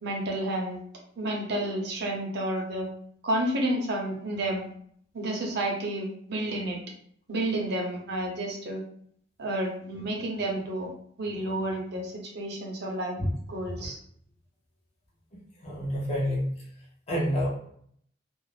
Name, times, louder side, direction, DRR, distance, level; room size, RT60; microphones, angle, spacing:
voice 1, 0.0-0.8 1.2-2.9 3.2-4.7 5.1-6.8 7.3-8.8 9.4-10.9 11.2-13.2 13.5-14.0, right 1 dB, 60° right, 0 dB, 0.6 m, -30 dB
voice 2, 15.6-16.5 17.1-17.5, equal, 35° left, -5 dB, 0.7 m, -28 dB
2.4 x 2.0 x 3.1 m, 0.64 s
head